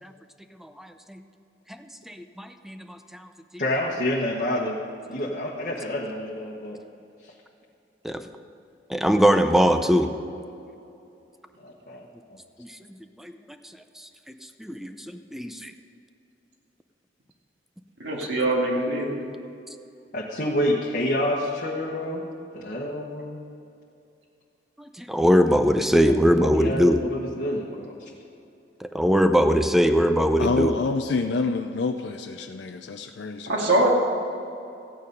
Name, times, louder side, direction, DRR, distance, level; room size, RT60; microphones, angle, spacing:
voice 1, 0.6-1.2 1.7-1.8 2.1-3.3 8.0-8.2 8.9-10.1 12.6-12.7 13.2-13.3 14.6-15.7 24.8-27.0 28.9-30.8, equal, ahead, 8 dB, 0.6 m, -21 dB
voice 2, 3.6-4.8 5.1-6.8 7.2-7.3 11.6-12.4 20.1-22.2 22.5-23.4 26.0-26.1 26.4-28.1, left 1 dB, 50° left, -3 dB, 1.2 m, -28 dB
voice 3, 18.0-19.2 33.5-33.9, right 2 dB, 75° right, -2 dB, 2.4 m, -23 dB
voice 4, 30.4-33.8, left 4 dB, 75° left, 6 dB, 0.5 m, -28 dB
15.0 x 9.0 x 5.4 m, 2.7 s
head